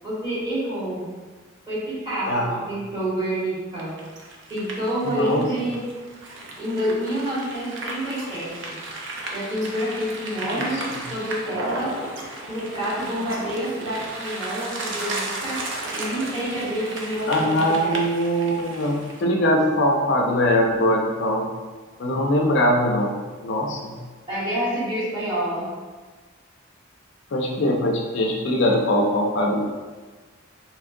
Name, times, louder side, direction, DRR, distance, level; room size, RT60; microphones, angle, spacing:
voice 1, 0.0-1.1 1.7-2.4 2.7-3.9 4.5-5.8 6.6-8.8 9.3-12.0 12.5-15.6 15.9-18.0 24.3-25.7, right 1 dB, 25° right, -10 dB, 1.5 m, -28 dB
voice 2, 2.3-2.6 5.0-5.7 10.5-11.0 17.3-21.5 22.0-23.1 23.4-24.0 27.3-29.6, equal, 60° left, 0 dB, 0.4 m, -22 dB
sound 1, 3.8-19.2, right 2 dB, 65° right, 0.5 m, -34 dB
3.6 x 3.0 x 2.5 m, 1.4 s
head